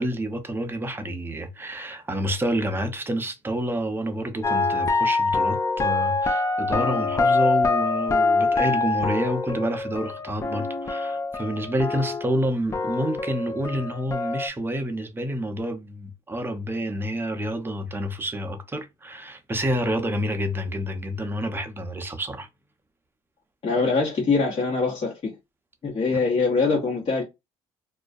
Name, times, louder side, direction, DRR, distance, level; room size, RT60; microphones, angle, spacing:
voice 1, 0.0-22.5, equal, 15° right, 0.6 m, -28 dB
sound 1, 4.4-12.4 12.7-14.5, left 3 dB, 25° left, 0.4 m, -25 dB
voice 2, 23.6-25.3 25.8-27.2, left 4 dB, 40° left, 1.0 m, -23 dB
2.3 x 2.1 x 2.5 m
supercardioid pair, 80°, 13 cm